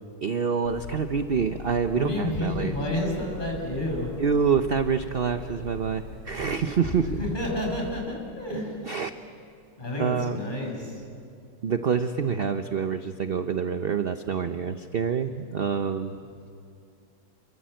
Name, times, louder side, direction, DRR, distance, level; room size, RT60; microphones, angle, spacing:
voice 1, 0.2-2.7 4.2-7.2 8.8-9.1 10.0-10.4 11.6-16.2, right 6 dB, 50° right, 8 dB, 0.7 m, -26 dB
sound 1, 0.6-8.0, left 4 dB, 70° left, 3.2 m, -42 dB
voice 2, 1.9-4.1 7.2-8.7 9.8-11.0, left 1 dB, 25° left, 0 dB, 6.0 m, -30 dB
28.5 x 23.5 x 7.7 m, 2.5 s
omnidirectional pair, 1.9 m